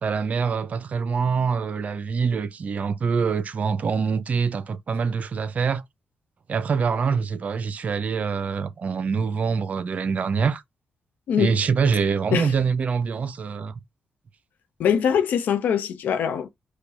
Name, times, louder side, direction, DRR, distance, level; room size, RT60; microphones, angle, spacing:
voice 1, 0.0-5.8 6.5-10.6 11.4-13.7, right 5 dB, 55° right, 0.6 m, -25 dB
voice 2, 14.8-16.5, left 8 dB, 75° left, 0.8 m, -22 dB
4.8 x 2.3 x 4.2 m
supercardioid pair, 45°, 3 cm